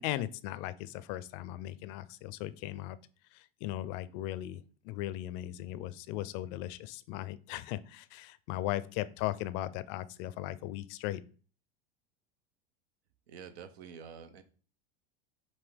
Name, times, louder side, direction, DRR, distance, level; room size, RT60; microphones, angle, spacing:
voice 1, 0.0-3.0 3.3-11.2, left 14 dB, 55° left, 16 dB, 0.4 m, -38 dB
voice 2, 13.3-14.4, right 7 dB, 85° right, 10 dB, 0.8 m, -48 dB
5.3 x 2.7 x 3.4 m, 0.39 s
supercardioid pair, 105°, 31 cm